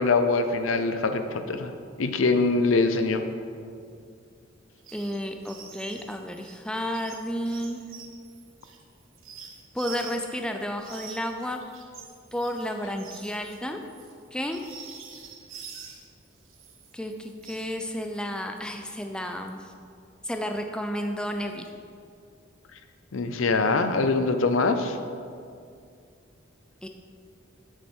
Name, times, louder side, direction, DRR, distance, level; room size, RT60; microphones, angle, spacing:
voice 1, 0.0-1.7 2.0-3.2 23.1-25.0, left 3 dB, 80° left, 8 dB, 0.6 m, -23 dB
sound 1, 4.8-5.2 5.4-10.4 10.8-16.1 16.4-17.7, right 7 dB, 80° right, 1.1 m, -46 dB
voice 2, 4.9-7.8 9.7-11.6 12.3-13.8 14.3-14.6 16.9-19.7 20.2-21.7 26.8-26.9, equal, 5° left, 4 dB, 0.4 m, -32 dB
8.4 x 7.5 x 4.5 m, 2.3 s
head